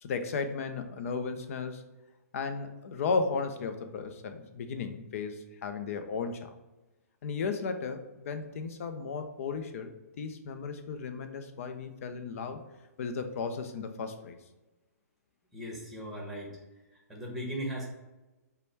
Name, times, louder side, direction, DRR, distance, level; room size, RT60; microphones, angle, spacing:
voice 1, 0.0-1.8 2.3-6.5 7.2-9.9 10.2-12.6 13.0-14.4, left 4 dB, 55° left, 8 dB, 0.6 m, -35 dB
voice 2, 15.5-16.6 16.9-17.8, equal, ahead, -3 dB, 1.4 m, -38 dB
5.0 x 2.3 x 4.4 m, 1.1 s
hypercardioid pair, 130°, 9 cm